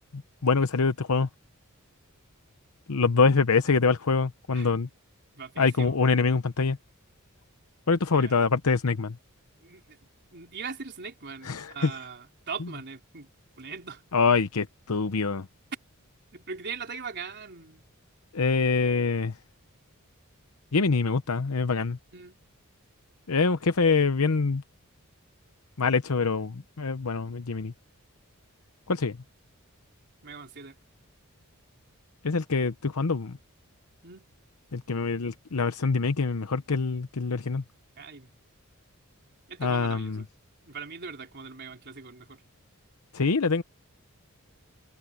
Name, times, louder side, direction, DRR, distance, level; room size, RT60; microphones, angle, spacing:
voice 1, 0.4-1.3 2.9-4.9 5.6-6.8 7.9-9.2 11.4-11.9 14.1-15.4 18.3-19.3 20.7-22.0 23.3-24.6 25.8-27.7 28.9-29.2 32.2-33.4 34.7-37.6 39.6-40.2 43.1-43.6, left 4 dB, 85° left, 0.9 m, -25 dB
voice 2, 5.4-6.3 8.1-8.3 9.6-13.3 13.6-14.0 16.3-17.8 22.1-22.4 30.2-30.8 34.0-34.3 38.0-38.3 39.5-40.3 40.7-42.4, right 5 dB, 50° right, 4.1 m, -41 dB
head